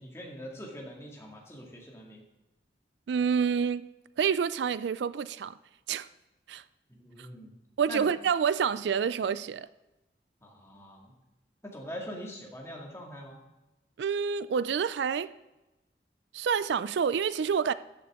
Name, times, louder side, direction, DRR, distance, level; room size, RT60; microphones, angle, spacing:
voice 1, 0.0-2.2 6.9-7.5 7.9-8.1 10.4-11.1 11.6-13.4, equal, 15° left, 2.1 m, -43 dB
voice 2, 3.1-3.9 4.2-5.5 5.9-6.1 6.5-6.6 7.8-9.7 14.0-15.3 16.3-17.7, right 7 dB, 75° right, 0.4 m, -28 dB
13.5 x 9.7 x 3.6 m
head